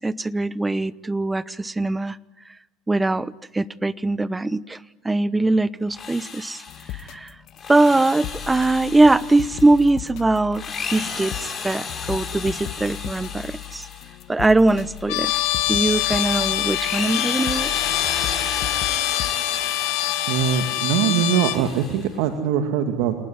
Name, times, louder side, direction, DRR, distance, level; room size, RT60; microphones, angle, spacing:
voice 1, 0.0-2.2 2.9-4.8 5.0-6.6 6.9-7.3 7.7-10.6 10.9-13.9 14.3-15.3 15.7-17.7, right 2 dB, 15° right, 19 dB, 1.0 m, -21 dB
Drill, 5.8-7.0 7.5-9.9 10.4-14.2 14.6-22.1, left 5 dB, 35° left, 6.7 m, -33 dB
sound 1, 6.7-19.3, left 13 dB, 65° left, 1.5 m, -37 dB
Trumpet, 15.1-21.6, left 16 dB, 80° left, 1.7 m, -25 dB
voice 2, 20.3-23.2, right 8 dB, 80° right, 7 dB, 2.2 m, -22 dB
29.0 x 18.5 x 9.9 m, 0.89 s
supercardioid pair, 85°, 0 cm